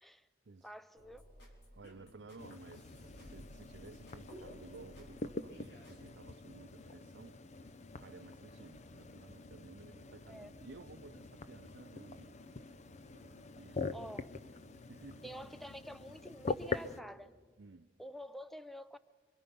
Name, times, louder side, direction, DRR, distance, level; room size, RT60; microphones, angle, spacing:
voice 1, 0.6-1.2 10.3-10.5 13.9-14.3 15.2-17.3 18.0-19.0, equal, ahead, 0.6 m, -48 dB
sound 1, 0.9-6.1, equal, 70° left, 3.8 m, -56 dB
voice 2, 1.7-7.4 8.0-12.4 13.1-14.2 14.5-15.4 17.6-17.9, right 3 dB, 80° right, 0.6 m, -55 dB
sound 2, 2.4-17.0, left 3 dB, 40° left, 0.6 m, -45 dB
27.5 x 23.0 x 5.3 m
head